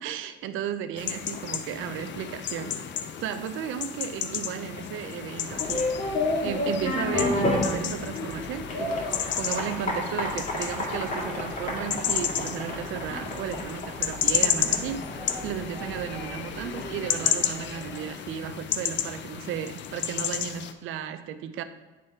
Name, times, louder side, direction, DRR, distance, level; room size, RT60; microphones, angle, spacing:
voice 1, 0.0-2.7 3.2-5.8 6.4-8.9 9.4-15.2 15.4-21.6, right 10 dB, 85° right, 10 dB, 0.5 m, -34 dB
sound 1, 1.0-20.7, left 8 dB, 65° left, 0.5 m, -32 dB
sound 2, 5.5-18.2, left 1 dB, 40° left, 1.9 m, -31 dB
9.1 x 3.3 x 4.3 m, 1.2 s
cardioid pair, 90°, 20 cm